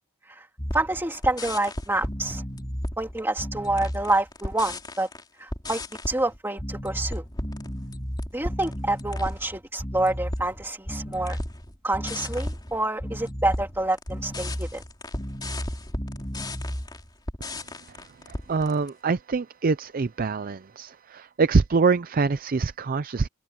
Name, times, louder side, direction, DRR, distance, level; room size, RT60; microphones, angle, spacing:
sound 1, 0.6-5.2 5.5-18.9, left 1 dB, 20° left, 3.6 m, -33 dB
voice 1, 0.7-2.4 3.0-5.1 5.4-5.8 6.1-7.2 8.3-11.4 11.8-14.8, right 2 dB, 10° right, 2.7 m, -27 dB
voice 2, 18.3-23.3, right 4 dB, 40° right, 0.5 m, -24 dB
head